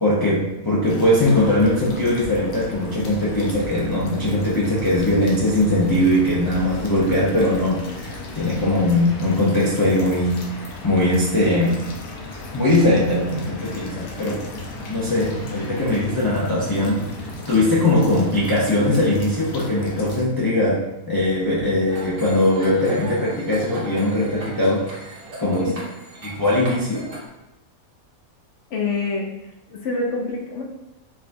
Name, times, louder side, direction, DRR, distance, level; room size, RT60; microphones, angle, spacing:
voice 1, 0.0-11.8 12.5-14.4 14.9-17.0 17.5-25.1 25.4-25.7 26.2-27.1, left 1 dB, 35° left, -8 dB, 0.3 m, -20 dB
sound 1, 0.8-20.2, left 2 dB, 90° left, 1.2 m, -35 dB
sound 2, 21.9-27.3, right 1 dB, 80° right, 1.5 m, -38 dB
voice 2, 25.4-25.9 28.7-29.3 29.7-30.6, left 3 dB, 60° left, 1 dB, 0.9 m, -26 dB
4.7 x 2.3 x 2.6 m, 0.90 s
omnidirectional pair, 1.5 m